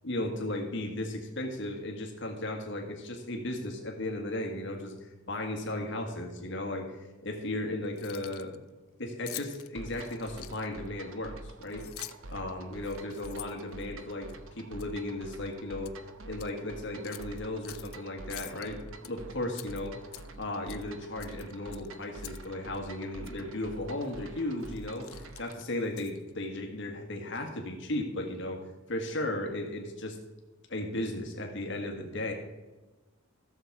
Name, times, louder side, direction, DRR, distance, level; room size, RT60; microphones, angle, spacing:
voice 1, 0.0-8.6 9.0-11.8 12.3-14.3 14.6-15.9 16.2-20.0 20.4-25.1 25.4-28.6 28.9-30.2 30.7-32.3, left 1 dB, 60° left, 2 dB, 1.6 m, -35 dB
Keys jangling, 7.8-8.6 9.3-10.9 11.6-12.4 12.8-14.3 14.8-15.0 15.3-16.0 16.3-16.5 17.0-18.0 18.3-19.1 19.5-20.4 20.7-20.9 21.2-22.5 22.7-22.8 23.2-23.4 24.0-24.2 24.6-26.3, left 16 dB, 80° left, 0.5 m, -46 dB
sound 1, 9.8-25.6, right 2 dB, 65° right, 0.9 m, -47 dB
14.5 x 7.1 x 4.6 m, 1.2 s
head